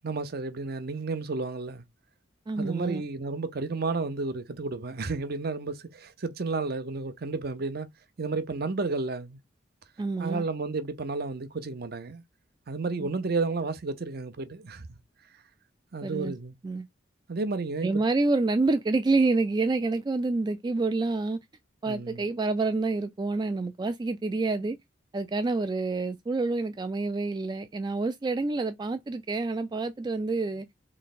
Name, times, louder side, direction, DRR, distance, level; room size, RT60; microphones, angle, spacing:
voice 1, 0.0-1.8 2.6-7.9 8.2-9.4 10.2-12.2 12.7-15.0 15.9-16.6 17.3-18.0 21.9-22.3, right 3 dB, 55° right, 0.6 m, -32 dB
voice 2, 2.5-3.0 10.0-10.4 13.0-13.1 16.0-16.3 16.6-16.9 17.8-21.4 21.8-24.8 25.1-30.7, right 3 dB, 20° right, 0.3 m, -28 dB
3.2 x 3.1 x 4.2 m
head